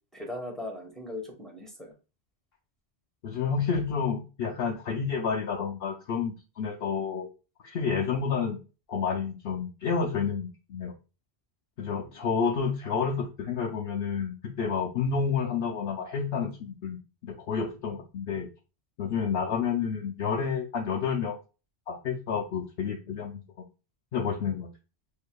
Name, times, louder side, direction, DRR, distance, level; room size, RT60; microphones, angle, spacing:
voice 1, 0.1-1.9 11.8-12.1, left 1 dB, ahead, -1 dB, 1.0 m, -39 dB
voice 2, 3.2-7.3 7.6-8.6 8.9-10.9 11.8-17.0 17.2-18.5 19.0-21.4 21.9-23.4 24.1-24.7, left 6 dB, 70° left, 1 dB, 0.9 m, -30 dB
6.5 x 2.7 x 2.2 m, 0.32 s
omnidirectional pair, 1.1 m